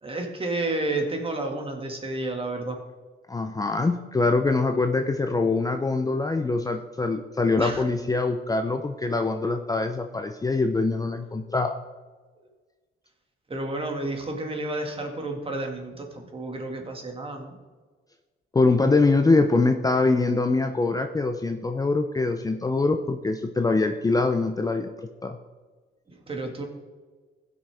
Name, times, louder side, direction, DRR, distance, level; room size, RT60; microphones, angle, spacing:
voice 1, 0.0-2.8 7.6-7.8 13.5-17.6 26.1-26.7, right 2 dB, 30° right, 2 dB, 2.0 m, -31 dB
voice 2, 3.3-11.7 18.5-25.4, left 3 dB, 20° left, 6 dB, 0.6 m, -24 dB
15.5 x 6.2 x 3.5 m, 1.4 s
cardioid pair, 90°, 20 cm